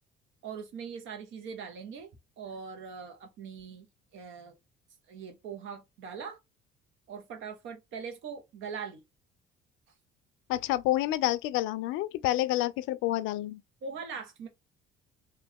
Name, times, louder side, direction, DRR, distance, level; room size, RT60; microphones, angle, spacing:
voice 1, 0.4-2.1 2.4-3.9 4.1-4.6 5.1-6.4 7.1-9.0 13.8-14.5, right 6 dB, 70° right, 1.2 m, -41 dB
voice 2, 10.5-13.6, left 15 dB, 75° left, 0.4 m, -28 dB
3.1 x 2.6 x 3.4 m
supercardioid pair, 80°, 21 cm